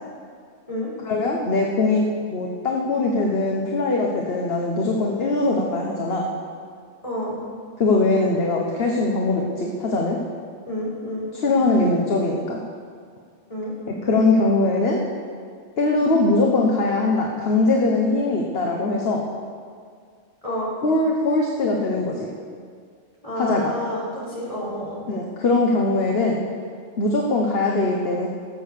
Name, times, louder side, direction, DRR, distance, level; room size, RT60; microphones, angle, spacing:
voice 1, 1.1-2.0 2.3-6.3 7.8-10.2 11.4-12.6 14.0-15.0 15.8-19.2 20.8-22.3 23.4-23.7 25.1-26.4 27.0-28.3, left 2 dB, 55° left, 0 dB, 1.3 m, -21 dB
voice 2, 7.0-7.4 10.7-11.3 13.5-13.7 20.4-20.7 23.2-25.0, left 1 dB, 25° left, -7 dB, 4.2 m, -29 dB
16.0 x 7.7 x 6.7 m, 2.1 s
omnidirectional pair, 1.3 m